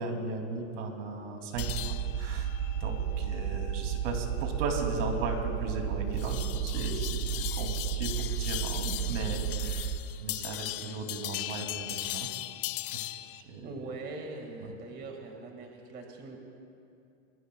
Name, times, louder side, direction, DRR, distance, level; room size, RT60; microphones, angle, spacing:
voice 1, 0.0-2.5 2.8-9.9 10.2-12.3 12.9-13.1 13.3-13.7 14.6-14.7, right 3 dB, 75° right, 3 dB, 2.9 m, -36 dB
sound 1, 1.6-13.4, left 17 dB, 50° left, 0.6 m, -39 dB
sound 2, 1.6-10.0, right 9 dB, 55° right, 0.9 m, -33 dB
voice 2, 13.6-16.4, right 3 dB, 25° right, 2 dB, 2.0 m, -42 dB
28.0 x 22.0 x 2.3 m, 2.6 s
supercardioid pair, 155°, 36 cm